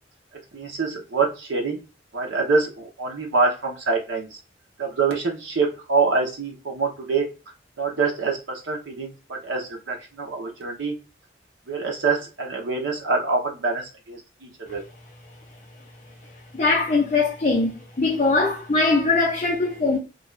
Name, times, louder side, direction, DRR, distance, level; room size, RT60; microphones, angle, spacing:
voice 1, 0.5-1.8 2.1-4.4 4.8-7.3 7.8-10.9 11.7-14.8, right 4 dB, 85° right, 0.7 m, -25 dB
voice 2, 16.5-17.7 18.0-20.0, left 3 dB, 35° left, 0.6 m, -21 dB
2.5 x 2.3 x 3.1 m
head